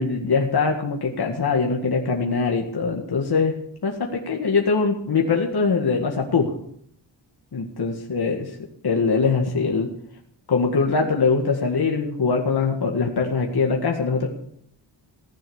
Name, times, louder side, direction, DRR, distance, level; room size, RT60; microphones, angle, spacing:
voice 1, 0.0-3.6 3.8-6.5 7.5-8.5 8.8-9.9 10.5-14.3, left 4 dB, 55° left, 1 dB, 2.0 m, -22 dB
16.0 x 10.0 x 7.1 m, 0.68 s
wide cardioid pair, 115°, 45 cm